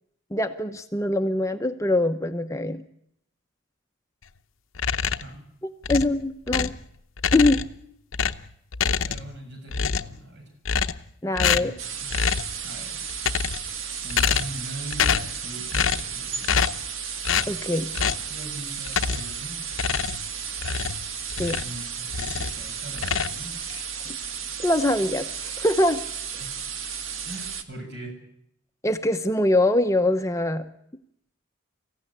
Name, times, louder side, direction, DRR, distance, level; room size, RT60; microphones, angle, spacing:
voice 1, 0.3-2.8 5.9-6.7 7.3-7.6 11.2-11.7 17.5-17.9 21.4-21.6 24.6-26.0 28.8-30.7, left 1 dB, 15° left, 7 dB, 0.8 m, -23 dB
sound 1, 4.7-5.4 5.8-6.8 7.2-7.8 8.1-9.4 9.7-10.2 10.6-11.1 11.4-11.8 12.1-12.5 13.1-13.7 14.1-14.6 14.9-15.4 15.7-16.1 16.4-16.9 17.2-17.5 17.9-18.3 18.9-19.4 19.7-21.8 22.1-22.6 23.0-23.8, left 6 dB, 80° left, 0.8 m, -26 dB
voice 2, 9.1-10.5 11.5-12.1 12.6-13.0 13.9-16.7 18.3-19.6 21.6-23.6 26.4-26.5 27.3-28.2, right 1 dB, 55° right, 3 dB, 7.4 m, -40 dB
sound 2, 11.8-27.6, right 7 dB, 80° right, 1.7 m, -34 dB
24.0 x 15.5 x 9.9 m, 0.77 s
head